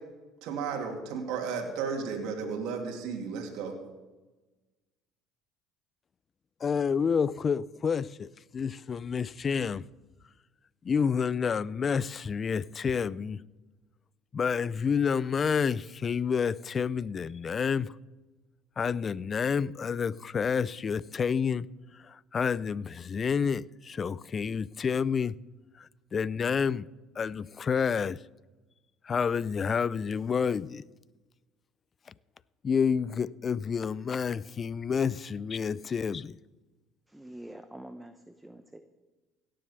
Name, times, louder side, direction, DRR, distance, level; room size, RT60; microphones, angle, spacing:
voice 1, 0.4-3.8, right 5 dB, 70° right, 2.5 m, -34 dB
voice 2, 6.6-9.8 10.8-13.4 14.3-17.9 18.8-21.7 22.0-25.4 25.8-26.9 27.2-28.2 29.0-30.8 32.6-36.4, left 6 dB, 35° left, 0.4 m, -29 dB
voice 3, 37.1-38.8, right 1 dB, 10° right, 0.9 m, -46 dB
17.0 x 7.7 x 6.9 m
supercardioid pair, 80°, 0 cm